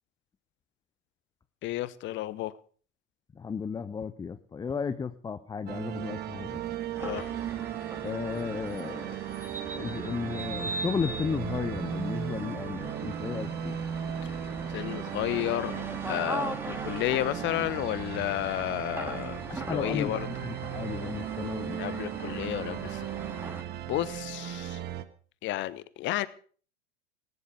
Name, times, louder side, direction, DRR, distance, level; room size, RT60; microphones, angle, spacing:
voice 1, 1.6-2.6 7.0-7.3 14.2-14.4 14.7-20.3 21.8-23.0 23.9-24.8 25.4-26.3, left 15 dB, 35° left, 1.2 m, -32 dB
voice 2, 3.4-6.6 8.0-9.2 9.7-13.8 19.5-20.1 20.4-21.8, left 6 dB, 10° left, 0.7 m, -34 dB
sound 1, 5.7-25.0, right 10 dB, 30° right, 1.4 m, -36 dB
sound 2, 6.9-23.6, right 1 dB, 5° right, 2.7 m, -40 dB
19.5 x 11.0 x 6.6 m
figure-of-eight pair, 85°, 35 cm